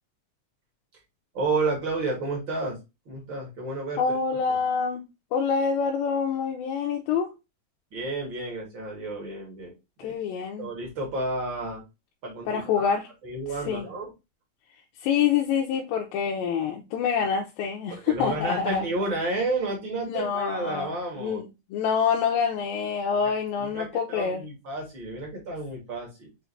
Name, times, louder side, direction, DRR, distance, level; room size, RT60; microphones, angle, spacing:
voice 1, 1.3-2.8 3.1-4.0 4.5-4.6 7.9-9.7 10.0-10.2 10.6-11.8 12.2-12.9 13.2-14.1 17.9-21.4 23.6-26.3, right 2 dB, 55° right, 1.3 m, -31 dB
voice 2, 4.0-5.0 5.3-7.4 10.0-10.7 12.5-13.1 13.7-13.9 15.0-18.9 20.1-20.9 21.2-24.4, left 6 dB, 85° left, 2.3 m, -26 dB
6.1 x 2.5 x 2.5 m
omnidirectional pair, 4.0 m